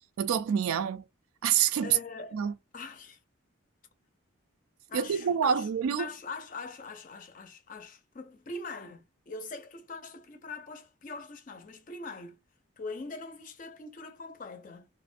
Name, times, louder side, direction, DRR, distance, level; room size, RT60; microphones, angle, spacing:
voice 1, 0.2-1.1 1.4-2.0 2.3-2.5 4.9-6.1, right 8 dB, 85° right, 0.3 m, -27 dB
voice 2, 1.8-2.4 2.7-3.2 4.9-5.7 6.0-12.4 12.8-14.9, left 3 dB, 40° left, 0.5 m, -42 dB
2.4 x 2.1 x 2.5 m
head